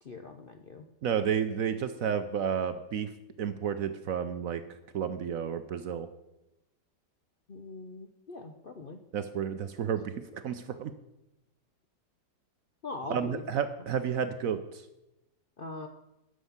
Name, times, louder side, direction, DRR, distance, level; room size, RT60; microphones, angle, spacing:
voice 1, 0.0-0.9 7.5-9.0 12.8-13.4 15.6-15.9, left 3 dB, 50° left, 5 dB, 0.6 m, -41 dB
voice 2, 1.0-3.1 3.4-4.6 4.9-6.1 9.1-10.9 13.1-14.8, right 8 dB, 65° right, 10 dB, 0.9 m, -31 dB
11.5 x 6.4 x 7.1 m, 0.92 s
omnidirectional pair, 1.9 m